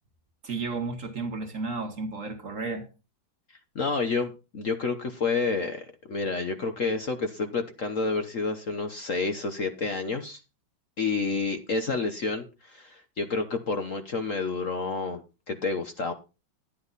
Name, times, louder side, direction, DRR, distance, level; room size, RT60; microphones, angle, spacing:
voice 1, 0.4-2.9, right 3 dB, 45° right, 1.6 m, -33 dB
voice 2, 3.7-10.4 11.0-15.2 15.5-16.1, left 4 dB, 50° left, 1.2 m, -29 dB
11.0 x 10.5 x 4.0 m
omnidirectional pair, 2.2 m